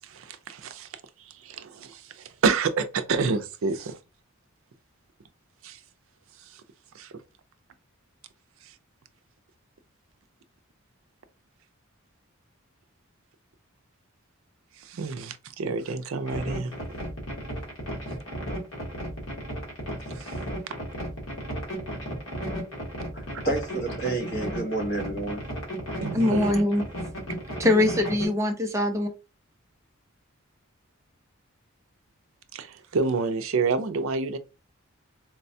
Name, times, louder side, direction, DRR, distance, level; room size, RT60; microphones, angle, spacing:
voice 1, 0.0-4.0 5.6-5.8 6.4-6.6 6.9-7.1 8.6-8.7 14.8-16.7 18.1-18.2 20.1-20.4 26.0-26.6 32.5-34.4, right 4 dB, 70° right, 0.4 m, -29 dB
sound 1, 16.3-28.3, equal, 65° left, 1.2 m, -34 dB
voice 2, 23.1-25.4, right 2 dB, 50° left, 1.0 m, -30 dB
voice 3, 26.1-26.8 27.6-29.1, left 1 dB, 15° right, 0.4 m, -22 dB
4.0 x 2.1 x 2.6 m
head